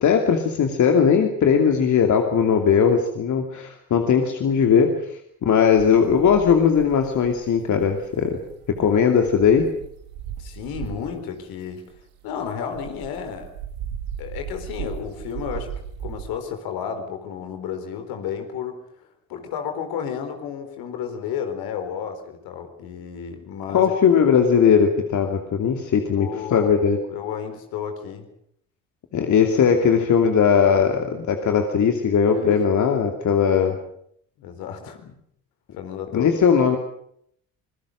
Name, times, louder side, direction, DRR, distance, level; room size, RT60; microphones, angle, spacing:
voice 1, 0.0-4.9 5.4-8.4 8.7-9.7 23.7-27.0 29.1-33.7 36.1-36.8, left 7 dB, 45° left, 4 dB, 2.8 m, -19 dB
sound 1, 5.7-11.2 11.7-16.3, right 9 dB, 70° right, 3.7 m, -37 dB
voice 2, 10.4-11.8 12.2-13.5 14.2-18.8 19.3-24.1 26.2-28.3 32.2-32.6 33.5-33.8 34.4-35.0 35.8-36.3, left 8 dB, 65° left, 6 dB, 4.3 m, -32 dB
26.0 x 21.5 x 6.6 m, 0.69 s
hypercardioid pair, 55°, 39 cm